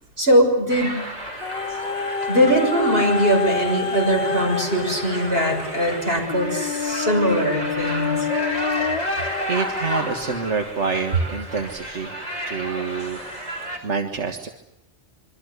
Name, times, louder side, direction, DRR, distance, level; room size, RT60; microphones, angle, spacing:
voice 1, 0.2-1.0 2.3-8.3, equal, 55° right, 2 dB, 6.9 m, -21 dB
sound 1, 0.7-13.8, equal, 35° right, 5.0 m, -32 dB
sound 2, 1.4-10.5 11.2-11.3, left 6 dB, 55° left, 1.4 m, -28 dB
voice 2, 9.5-12.2 12.5-13.2 13.8-14.5, right 5 dB, 85° right, 5 dB, 2.0 m, -27 dB
26.5 x 24.5 x 8.2 m, 0.84 s
omnidirectional pair, 1.2 m